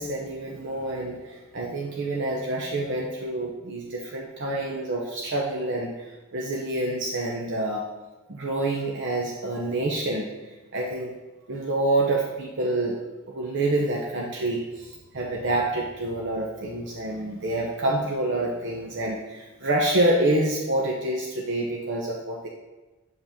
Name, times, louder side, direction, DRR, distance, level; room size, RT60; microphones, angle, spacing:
voice 1, 0.0-7.9 8.3-10.3 10.7-11.1 11.5-13.0 13.3-22.5, right 1 dB, 55° right, -2 dB, 0.8 m, -27 dB
7.7 x 6.2 x 3.6 m, 1.1 s
head